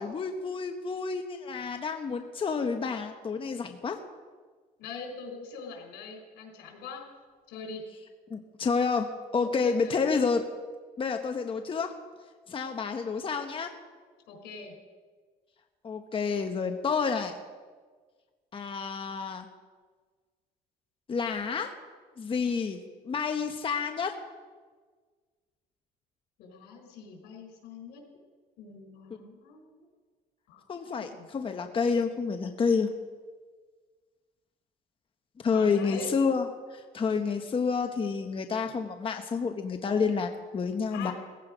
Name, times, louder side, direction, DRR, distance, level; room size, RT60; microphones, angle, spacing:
voice 1, 0.0-4.0 8.3-10.4 11.0-11.9 12.5-13.7 15.8-17.4 18.5-19.5 21.1-21.7 22.2-22.8 23.0-24.1 30.7-32.9 35.4-41.1, left 5 dB, 30° left, 5 dB, 1.1 m, -29 dB
voice 2, 4.8-7.0 7.5-7.8 9.6-10.0 14.3-14.7 26.4-28.0 28.6-29.8 30.5-30.6 30.9-31.3 35.5-36.2 40.9-41.1, left 5 dB, 85° left, 3 dB, 4.4 m, -43 dB
17.0 x 15.5 x 5.0 m, 1.5 s
cardioid pair, 110°, 17 cm